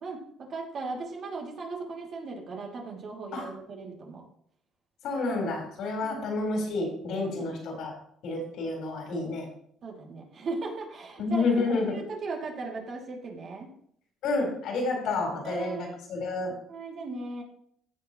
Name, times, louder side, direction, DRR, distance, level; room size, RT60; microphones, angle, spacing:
voice 1, 0.0-4.2 6.0-6.2 7.2-7.5 9.8-11.5 11.9-13.7 15.4-16.0 16.7-17.4, right 3 dB, 45° right, 0 dB, 2.5 m, -37 dB
voice 2, 5.0-8.0 8.2-9.5 11.2-11.9 14.2-16.5, left 3 dB, 70° left, 0 dB, 4.2 m, -29 dB
15.5 x 7.0 x 3.0 m, 0.66 s
cardioid pair, 140°, 0 cm